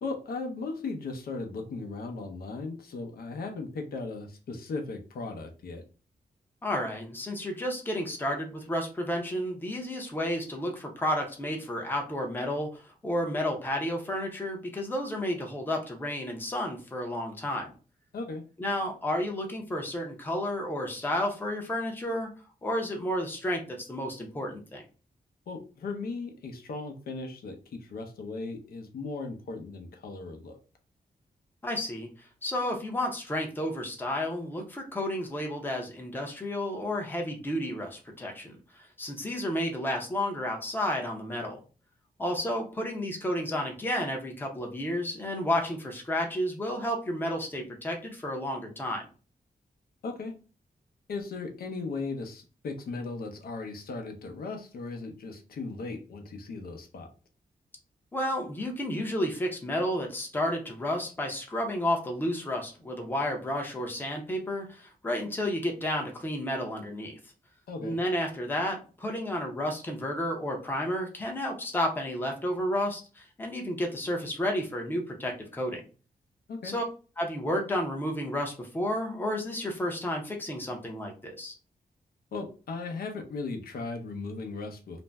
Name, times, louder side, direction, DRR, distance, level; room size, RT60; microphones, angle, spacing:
voice 1, 0.0-5.8 18.1-18.4 25.5-30.6 50.0-50.3 51.1-57.1 67.7-68.0 76.5-76.8 82.3-85.0, left 3 dB, 75° left, 4 dB, 0.6 m, -37 dB
voice 2, 6.6-17.7 18.6-22.3 22.6-24.8 31.6-41.6 42.2-49.1 58.1-67.2 67.8-75.8 76.6-76.8 77.2-81.5, left 1 dB, 15° left, 1 dB, 0.6 m, -31 dB
2.5 x 2.1 x 3.2 m, 0.35 s
wide cardioid pair, 155°, 16 cm